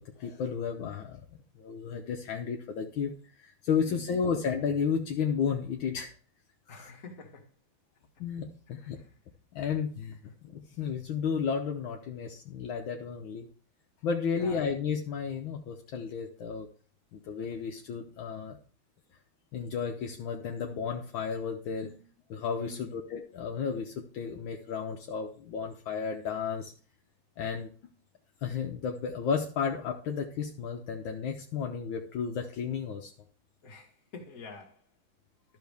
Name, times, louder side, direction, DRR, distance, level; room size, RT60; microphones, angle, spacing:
voice 1, 0.0-1.2 1.6-3.1 3.4-6.1 6.7-6.9 8.2-9.0 9.5-13.5 14.0-16.7 17.1-18.6 19.5-22.0 22.3-26.7 27.4-27.7 28.4-33.1, left 6 dB, 75° left, 1.5 m, -33 dB
voice 2, 3.8-4.5 6.7-7.5 8.8-9.1 10.2-10.3 14.3-14.7 22.6-23.0 33.6-34.8, left 4 dB, 45° left, 1.9 m, -47 dB
12.5 x 6.3 x 3.5 m
omnidirectional pair, 2.3 m